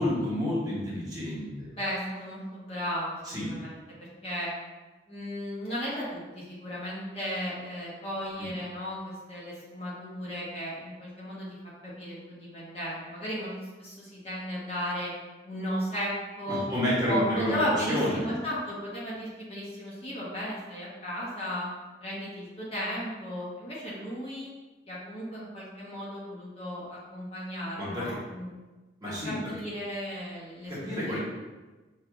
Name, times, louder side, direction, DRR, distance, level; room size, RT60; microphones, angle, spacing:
voice 1, 0.0-1.7 3.2-3.5 16.5-17.6 17.9-18.2 27.8-28.2 29.0-29.4 30.7-31.2, left 1 dB, 20° right, -8 dB, 1.2 m, -29 dB
voice 2, 1.7-3.7 4.2-4.5 5.1-11.6 11.8-13.5 13.8-15.1 15.4-16.7 17.1-21.7 22.0-24.5 24.9-28.5 29.2-31.2, equal, 35° left, -8 dB, 1.2 m, -35 dB
6.3 x 2.5 x 2.4 m, 1.2 s
head